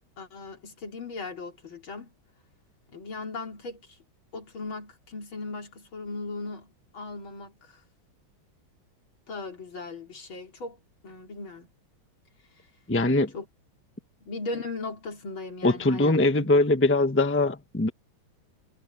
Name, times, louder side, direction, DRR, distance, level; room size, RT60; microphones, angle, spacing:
voice 1, 0.2-2.1 2.9-3.9 4.3-7.8 9.3-11.7 13.3-13.5 14.2-16.5, left 3 dB, 75° left, 4.4 m, -38 dB
voice 2, 12.9-13.3 15.6-17.9, left 2 dB, 10° left, 0.9 m, -22 dB
omnidirectional pair, 2.2 m